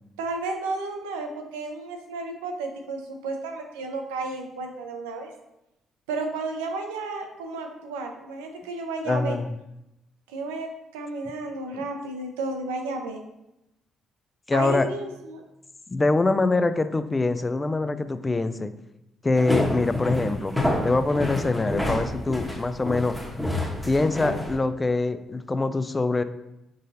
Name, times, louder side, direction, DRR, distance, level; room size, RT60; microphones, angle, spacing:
voice 1, 0.2-5.3 6.1-9.4 10.3-13.2 14.5-15.4, right 3 dB, 85° right, 4 dB, 0.6 m, -32 dB
voice 2, 9.1-9.5 11.7-11.8 14.5-14.9 15.9-18.7 19.2-20.5 20.8-23.2 23.9-26.2, left 3 dB, 25° left, 11 dB, 0.4 m, -24 dB
sound 1, 19.4-24.6, left 1 dB, ahead, 1.1 m, -28 dB
5.0 x 3.9 x 2.7 m, 0.89 s
hypercardioid pair, 50°, 0 cm